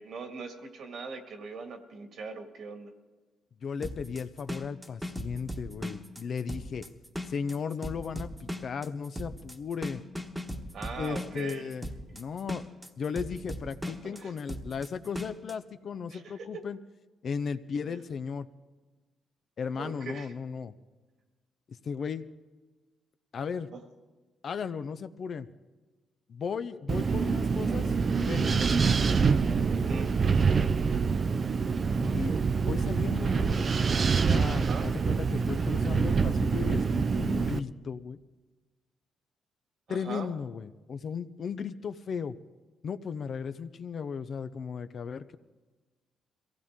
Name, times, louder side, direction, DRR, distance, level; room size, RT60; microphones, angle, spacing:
voice 1, 0.0-2.9 10.7-11.7 14.0-14.3 16.1-16.6 17.8-18.0 19.8-20.3 23.7-23.8 26.9-27.2 29.7-30.1 34.5-34.9 39.9-40.3, right 4 dB, 65° right, 5 dB, 2.1 m, -41 dB
voice 2, 3.6-6.8 7.3-10.0 11.0-12.7 13.0-16.8 17.2-18.5 19.6-20.7 21.7-22.2 23.3-23.7 24.4-25.5 26.3-28.6 32.0-32.3 32.6-33.5 34.2-38.2 39.9-42.4 42.8-45.4, left 6 dB, 55° left, 11 dB, 0.7 m, -36 dB
sound 1, 3.8-15.5, equal, 5° right, 1.3 m, -38 dB
Wind, 26.9-37.6, right 5 dB, 40° right, 0.6 m, -26 dB
22.5 x 16.0 x 3.7 m, 1.2 s
cardioid pair, 90°, 0 cm